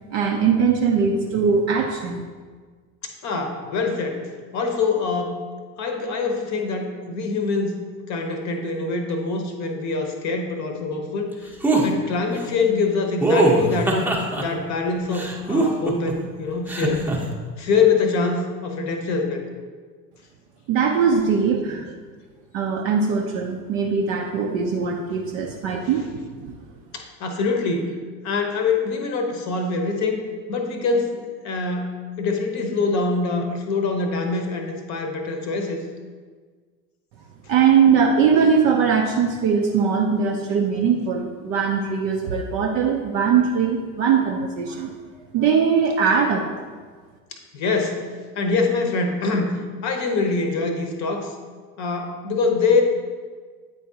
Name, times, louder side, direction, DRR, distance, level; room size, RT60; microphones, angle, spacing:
voice 1, 0.1-2.2 20.7-21.9 22.5-26.1 26.4-26.6 37.5-44.9 45.3-46.5, right 6 dB, 30° right, 1 dB, 0.4 m, -21 dB
voice 2, 3.0-4.2 4.5-5.3 5.8-7.7 8.1-11.6 11.8-14.0 14.4-17.0 17.6-19.4 21.6-21.8 25.8-26.1 26.9-28.0 28.2-30.2 30.5-35.8 47.3-48.1 48.4-51.3 51.8-52.8, left 4 dB, 35° left, 5 dB, 0.8 m, -24 dB
sound 1, 11.6-11.9 13.2-14.4 15.1-16.1 16.7-17.2, right 2 dB, 5° right, 0.8 m, -20 dB
9.2 x 3.8 x 2.7 m, 1.5 s
figure-of-eight pair, 70°, 49 cm